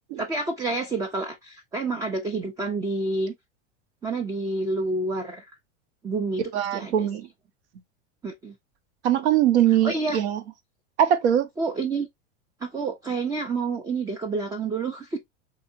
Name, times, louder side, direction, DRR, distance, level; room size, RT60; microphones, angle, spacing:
voice 1, 0.2-3.3 4.0-5.4 6.0-6.4 6.7-7.1 8.2-8.5 9.8-10.2 11.6-12.1 12.6-15.2, right 3 dB, 10° right, 0.3 m, -28 dB
voice 2, 6.5-7.3 9.0-10.4 11.0-11.5, right 10 dB, 70° right, 0.7 m, -21 dB
3.4 x 2.8 x 2.6 m
hypercardioid pair, 110°, 35 cm